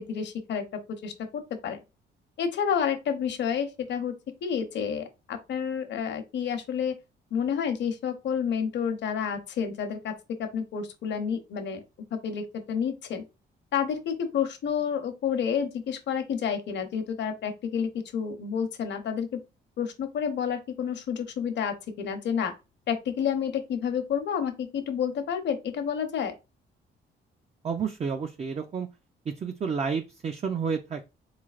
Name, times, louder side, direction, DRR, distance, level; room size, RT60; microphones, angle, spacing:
voice 1, 0.0-1.8 2.4-4.2 4.4-6.9 7.3-11.8 12.1-13.2 13.7-19.4 19.8-22.5 22.9-26.3, left 7 dB, 65° left, 0.8 m, -30 dB
voice 2, 27.6-28.9 29.3-31.0, right 6 dB, 35° right, 0.5 m, -30 dB
3.8 x 3.2 x 2.4 m
cardioid pair, 90°, 20 cm